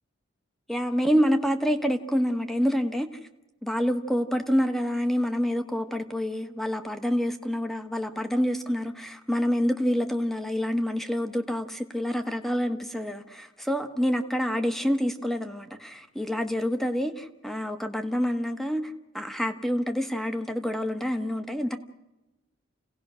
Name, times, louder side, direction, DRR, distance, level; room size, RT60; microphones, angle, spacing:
voice 1, 0.7-3.1 3.6-21.8, equal, ahead, 7 dB, 1.2 m, -27 dB
29.0 x 18.0 x 6.3 m, 1.0 s
head